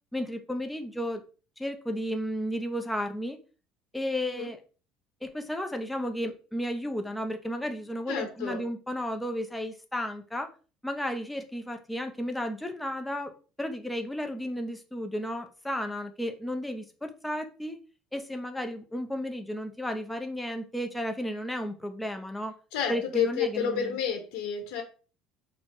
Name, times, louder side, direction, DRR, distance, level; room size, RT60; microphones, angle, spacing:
voice 1, 0.1-1.2 1.6-3.4 3.9-4.6 5.2-10.5 10.8-13.3 13.6-17.8 18.1-22.5 22.9-23.9, equal, 5° left, 5 dB, 0.4 m, -33 dB
voice 2, 8.1-8.6 22.7-24.8, left 7 dB, 85° left, 4 dB, 0.9 m, -30 dB
4.4 x 2.0 x 4.4 m, 0.36 s
cardioid pair, 175°, 0 cm